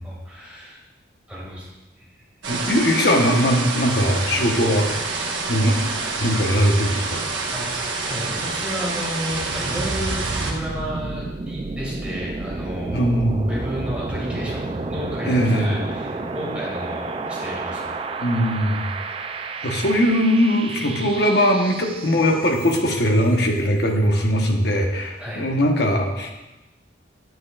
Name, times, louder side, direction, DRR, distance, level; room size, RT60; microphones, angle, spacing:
voice 1, 0.0-0.8 1.3-1.7 2.0-2.1 7.5-13.1 13.5-18.0 25.2-25.5, equal, 5° right, -6 dB, 2.0 m, -32 dB
sound 1, 2.4-10.5, right 3 dB, 70° right, 1.3 m, -27 dB
voice 2, 2.5-4.9 5.5-5.8 6.2-7.2 12.9-13.5 15.2-15.7 18.2-18.9 19.6-26.3, equal, 55° left, 1 dB, 1.1 m, -20 dB
sound 2, 9.3-23.1, right 3 dB, 30° right, 0.3 m, -31 dB
9.3 x 7.7 x 2.4 m, 1.0 s
head